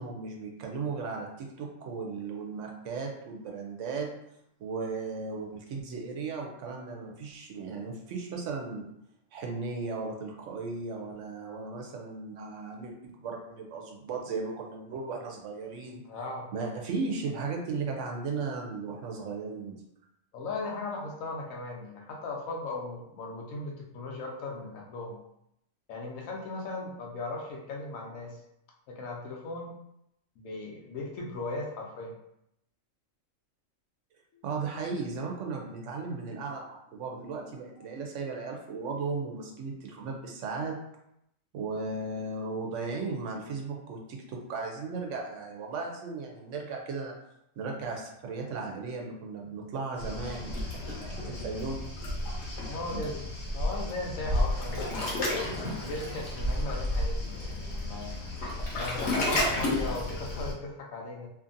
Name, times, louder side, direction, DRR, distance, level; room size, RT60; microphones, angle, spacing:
voice 1, 0.0-4.1 4.6-8.9 9.3-16.0 16.5-19.8 34.4-40.8 41.5-47.1 47.6-51.8, right 4 dB, 70° right, 1 dB, 0.8 m, -36 dB
voice 2, 16.1-16.5 20.3-25.2 25.9-28.4 28.9-29.7 30.4-32.1 34.3-34.4 37.8-37.9 52.6-53.2 53.5-55.2 55.8-58.2 58.7-61.3, left 2 dB, 85° left, 0 dB, 1.1 m, -37 dB
Waves surf, 50.0-60.5, left 1 dB, 60° left, 1.0 m, -32 dB
2.7 x 2.6 x 2.5 m, 0.78 s
omnidirectional pair, 1.4 m